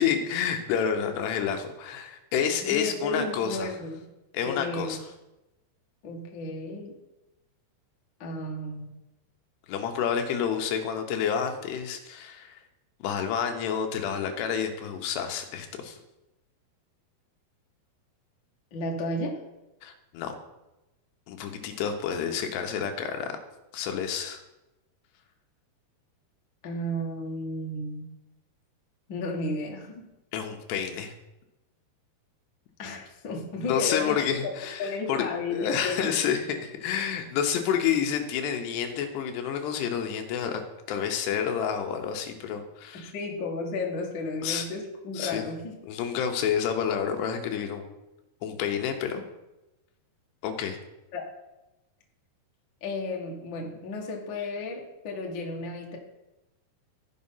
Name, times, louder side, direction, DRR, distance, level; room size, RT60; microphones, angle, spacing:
voice 1, 0.0-3.7 4.3-5.0 9.7-12.6 13.0-16.0 19.8-20.4 21.3-23.3 23.7-24.4 30.3-31.1 33.6-40.6 40.9-43.1 44.4-44.7 45.1-45.4 45.9-47.9 48.4-49.2 50.4-50.8, left 8 dB, 85° left, 5 dB, 3.2 m, -29 dB
voice 2, 2.6-4.0 4.4-5.0 6.0-6.9 8.2-8.9 18.7-19.4 26.6-28.1 29.1-30.0 32.8-34.5 34.8-36.1 42.9-45.8 51.1-51.2 52.8-56.0, left 2 dB, 60° left, 0 dB, 1.2 m, -33 dB
14.0 x 5.2 x 5.6 m, 0.97 s
omnidirectional pair, 4.7 m